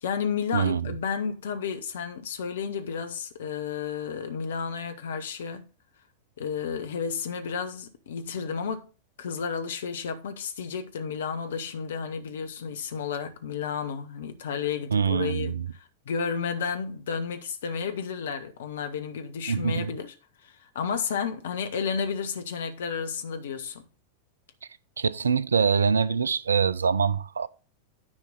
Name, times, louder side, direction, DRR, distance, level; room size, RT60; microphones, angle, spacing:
voice 1, 0.0-5.7 6.4-8.9 9.2-15.6 16.0-20.1 20.4-23.8, left 6 dB, 60° left, 1.1 m, -32 dB
voice 2, 14.9-15.6 19.5-19.9 25.0-27.5, right 6 dB, 70° right, 0.5 m, -24 dB
9.9 x 5.1 x 3.9 m
figure-of-eight pair, 90°, 0 cm